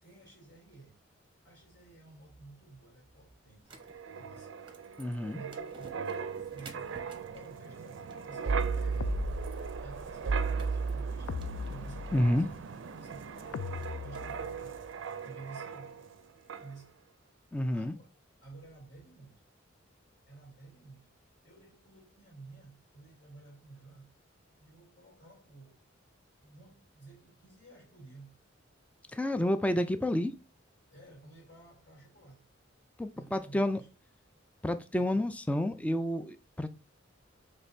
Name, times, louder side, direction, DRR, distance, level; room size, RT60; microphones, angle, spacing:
voice 1, 0.0-1.0 1.4-3.8 4.2-4.5 5.3-9.4 9.7-12.6 13.0-13.7 14.0-14.9 15.2-16.2 16.6-17.0 17.4-18.1 18.4-19.4 20.3-24.1 24.6-25.8 26.4-28.4 30.9-32.5 33.1-33.9 35.0-35.2, right 3 dB, 50° left, 2.6 m, -53 dB
sound 1, 3.6-14.6, right 3 dB, 25° right, 0.9 m, -56 dB
Wind, 3.8-16.2 16.5-16.7, right 5 dB, 65° right, 0.4 m, -36 dB
voice 2, 5.0-5.4 12.1-12.5 17.5-18.0 29.1-30.3 33.0-33.8 34.6-36.7, left 1 dB, 5° left, 0.3 m, -29 dB
sound 2, 9.0-10.1 11.3-12.5 13.5-14.8, left 5 dB, 90° left, 0.3 m, -40 dB
6.1 x 3.2 x 2.6 m
head